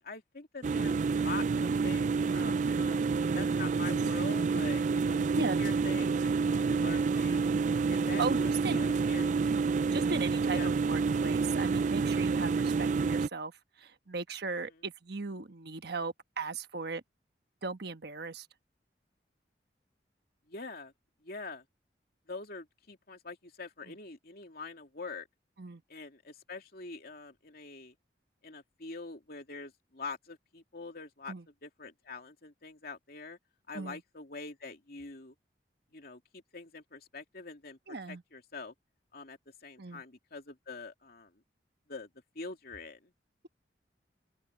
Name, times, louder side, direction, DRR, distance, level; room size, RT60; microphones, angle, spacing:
voice 1, 0.0-3.0 3.3-7.5 7.9-9.3 10.5-10.7 14.6-14.8 20.5-20.9 21.2-21.6 22.3-25.3 25.9-27.9 28.4-31.3 31.6-33.4 33.7-35.3 35.9-38.7 39.1-41.3 41.9-42.1 42.3-43.1, left 3 dB, 60° left, 2.8 m, -44 dB
sound 1, 0.6-13.3, right 4 dB, 45° right, 0.4 m, -28 dB
voice 2, 8.2-8.8 9.9-17.0 17.6-18.5 25.6-25.8 31.3-31.4 33.7-34.0 37.9-38.2 39.8-40.0, right 4 dB, 65° right, 1.3 m, -37 dB
open air
head